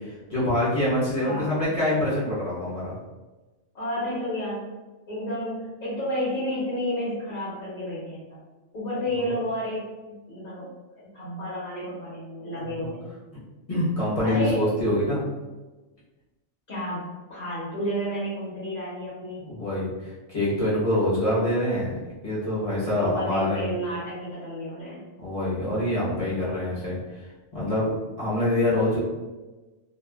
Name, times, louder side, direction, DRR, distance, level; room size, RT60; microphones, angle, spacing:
voice 1, 0.0-2.9 12.6-12.9 13.7-15.2 19.4-22.0 22.2-23.7 25.2-27.0 27.5-29.0, left 1 dB, 30° left, -9 dB, 0.8 m, -25 dB
voice 2, 3.7-4.7 5.1-8.4 8.7-13.1 14.2-14.7 16.7-19.5 22.9-25.1, equal, 55° left, -9 dB, 1.2 m, -31 dB
2.9 x 2.1 x 2.2 m, 1.2 s
omnidirectional pair, 1.4 m